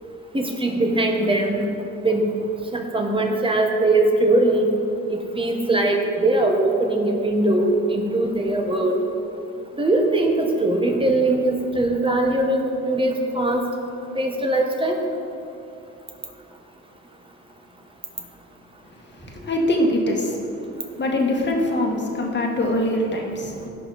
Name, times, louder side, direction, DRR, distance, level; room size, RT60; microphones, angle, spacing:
voice 1, 0.3-1.6 2.0-2.2 2.7-4.7 5.3-9.0 9.8-13.6 14.1-15.0, right 2 dB, 15° right, 2 dB, 1.6 m, -21 dB
voice 2, 19.2-20.5 21.0-23.7, left 1 dB, 35° left, 0 dB, 1.9 m, -23 dB
16.5 x 5.6 x 4.3 m, 2.8 s
cardioid pair, 90°, 30 cm